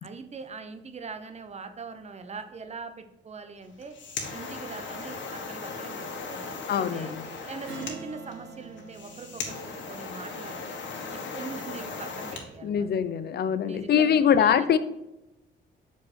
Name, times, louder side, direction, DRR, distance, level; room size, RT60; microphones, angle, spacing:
voice 1, 0.0-3.9 4.3-7.1 7.5-10.7 11.1-12.9 13.6-14.8, right 4 dB, 35° right, 8 dB, 0.9 m, -42 dB
sound 1, 3.7-12.5, left 4 dB, 70° left, 1.6 m, -38 dB
voice 2, 6.7-7.2 12.6-14.8, left 8 dB, 55° left, 13 dB, 0.6 m, -23 dB
Strum, 7.6-12.5, right 3 dB, 75° right, 1.8 m, -46 dB
6.5 x 5.2 x 4.4 m, 0.93 s
cardioid pair, 90°, 20 cm